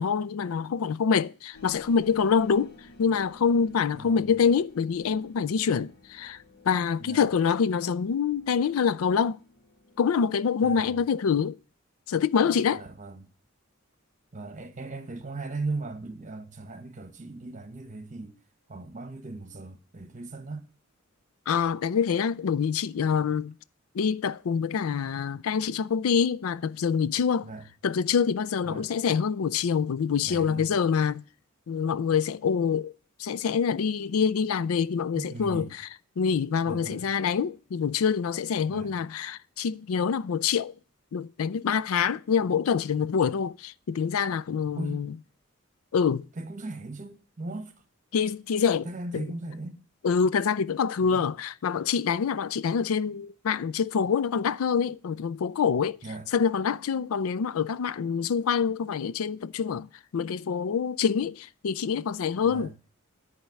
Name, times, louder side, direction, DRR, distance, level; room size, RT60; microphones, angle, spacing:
voice 1, 0.0-6.4 6.7-9.4 10.0-11.6 12.1-12.8 21.5-23.5 23.9-27.5 27.8-31.2 31.7-32.9 33.2-35.8 36.2-40.7 41.1-45.1 45.9-46.3 48.1-48.9 49.1-49.2 50.0-56.0 56.3-62.7, left 6 dB, 85° left, 0.4 m, -26 dB
sound 1, 1.5-11.3, left 3 dB, 50° left, 1.2 m, -55 dB
voice 2, 3.9-4.3 7.0-7.3 10.6-11.0 12.8-13.3 14.3-18.4 18.7-20.7 27.4-27.7 28.6-28.9 30.2-30.7 35.1-35.7 36.7-37.1 38.7-38.9 44.7-45.1 46.3-47.7 48.8-49.8 51.0-51.3 56.0-56.3 62.5-62.7, right 3 dB, 35° right, 1.2 m, -38 dB
10.5 x 4.3 x 6.9 m
head